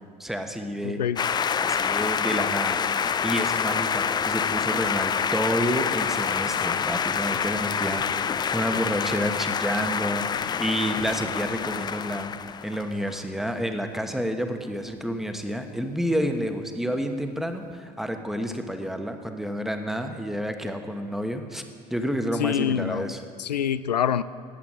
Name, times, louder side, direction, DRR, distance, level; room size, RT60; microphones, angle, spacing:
voice 1, 0.2-1.0 1.6-12.3 12.6-21.6 21.9-23.2, equal, ahead, 6 dB, 1.3 m, -29 dB
voice 2, 0.8-1.2 22.4-23.1 23.4-24.2, left 9 dB, 85° left, 16 dB, 0.4 m, -25 dB
sound 1, 1.2-13.2, left 7 dB, 20° left, 0.4 m, -27 dB
19.0 x 8.4 x 6.2 m, 2.1 s
figure-of-eight pair, 65°, 20 cm